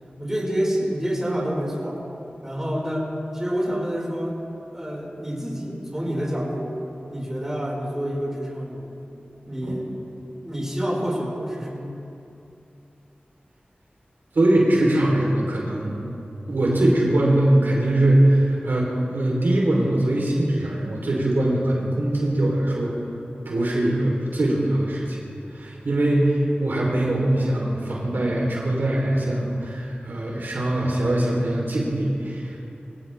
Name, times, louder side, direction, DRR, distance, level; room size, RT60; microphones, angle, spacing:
voice 1, 0.2-2.0 2.4-4.4 4.7-6.8 7.1-9.0 9.5-9.9 10.4-12.0, equal, 15° right, -4 dB, 4.8 m, -28 dB
voice 2, 14.3-16.0 16.5-22.9 23.4-25.3 25.5-32.6, right 1 dB, 80° right, -3 dB, 3.3 m, -22 dB
24.0 x 16.5 x 3.4 m, 2.7 s
wide cardioid pair, 50°, 3 cm